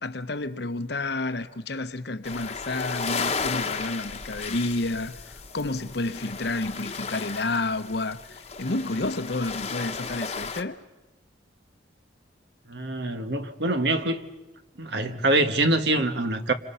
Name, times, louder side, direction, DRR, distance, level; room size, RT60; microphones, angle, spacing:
voice 1, 0.0-10.8, left 2 dB, 60° left, 0.9 m, -30 dB
sound 1, 2.2-10.6, left 5 dB, 35° left, 1.2 m, -34 dB
voice 2, 12.7-14.3 14.8-16.5, right 2 dB, 65° right, 1.5 m, -24 dB
28.0 x 26.0 x 5.7 m
head